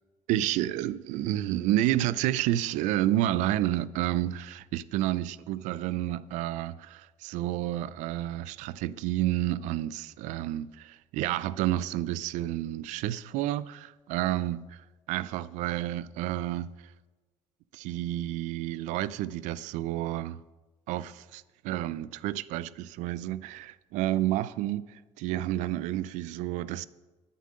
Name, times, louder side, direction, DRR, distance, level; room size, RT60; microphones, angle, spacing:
voice 1, 0.3-14.8 15.1-16.7 17.7-20.4 20.9-24.8 25.2-26.9, right 14 dB, 90° right, 0.4 m, -30 dB
9.3 x 7.4 x 7.7 m
cardioid pair, 145°, 12 cm